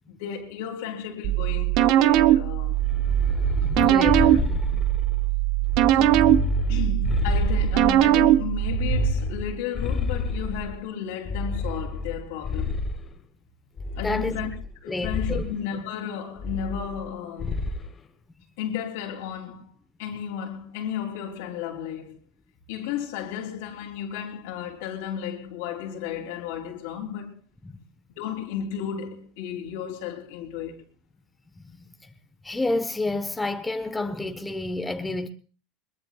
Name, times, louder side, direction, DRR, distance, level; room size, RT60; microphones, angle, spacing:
voice 1, 0.1-2.9 3.8-4.8 5.9-6.4 6.7-12.8 13.9-14.5 14.8-17.6 18.6-19.7 20.0-22.2 22.7-27.4 28.2-30.8, left 8 dB, 80° left, 3.3 m, -33 dB
sound 1, 1.2-9.1, right 14 dB, 60° right, 0.8 m, -21 dB
sound 2, 2.8-5.2 5.7-8.1 8.6-10.8 11.3-13.1 13.8-14.7 15.0-15.5 16.4-17.1 17.4-17.9, left 4 dB, 30° left, 1.4 m, -29 dB
voice 2, 3.7-4.2 4.5-4.6 14.0-14.3 14.9-15.4 27.6-27.8 31.7-31.9 32.4-35.3, left 2 dB, 10° left, 1.1 m, -29 dB
22.0 x 21.5 x 2.4 m
supercardioid pair, 125°, 0 cm